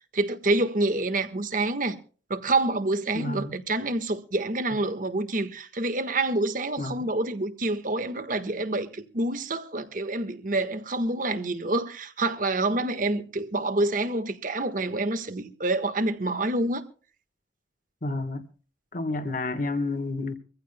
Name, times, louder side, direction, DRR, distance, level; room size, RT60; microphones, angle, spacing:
voice 1, 0.1-2.0 2.3-16.8, right 2 dB, 45° right, 1.5 m, -27 dB
voice 2, 3.1-3.5 6.8-7.0 18.0-18.4 18.9-20.3, left 2 dB, 45° left, 1.4 m, -30 dB
24.5 x 15.5 x 2.2 m
head